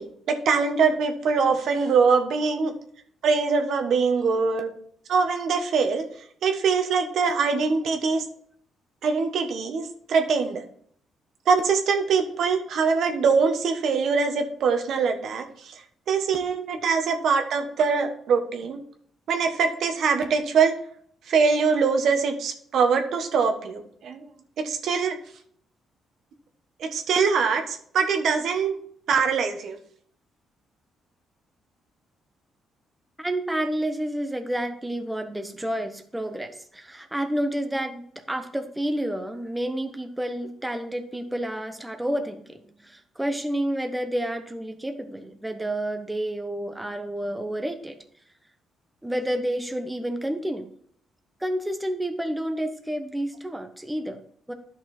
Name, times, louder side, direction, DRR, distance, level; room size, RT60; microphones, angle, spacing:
voice 1, 0.0-2.7 3.2-4.7 5.1-6.1 6.4-8.2 9.0-10.6 11.5-15.7 16.1-18.8 19.3-20.7 21.3-24.3 24.6-25.2 26.8-28.8 29.1-29.8, right 5 dB, 70° right, 5 dB, 1.3 m, -23 dB
voice 2, 33.2-48.0 49.0-50.6 51.4-54.2 54.5-54.6, right 1 dB, 10° right, 6 dB, 1.1 m, -30 dB
10.5 x 6.1 x 4.3 m, 0.63 s
cardioid pair, 90°, 0 cm